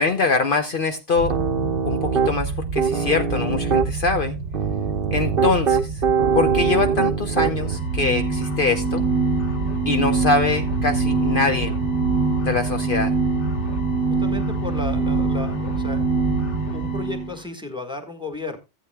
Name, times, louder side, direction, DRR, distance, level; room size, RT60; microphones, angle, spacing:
voice 1, 0.0-1.3 1.8-4.4 5.1-6.0 6.3-9.0 9.9-11.8 12.4-13.1, left 4 dB, 55° left, 6 dB, 0.9 m, -23 dB
sound 1, 1.2-17.0, right 4 dB, 75° right, 1.1 m, -29 dB
Piano, 1.3-2.3 2.8-3.9 4.5-7.8, right 6 dB, 55° right, 0.9 m, -22 dB
sound 2, 7.7-17.4, right 3 dB, 85° left, 1.8 m, -24 dB
voice 2, 14.2-16.0 16.7-18.6, left 3 dB, 5° right, 6 dB, 1.5 m, -33 dB
15.0 x 8.3 x 2.2 m, 0.24 s
omnidirectional pair, 1.2 m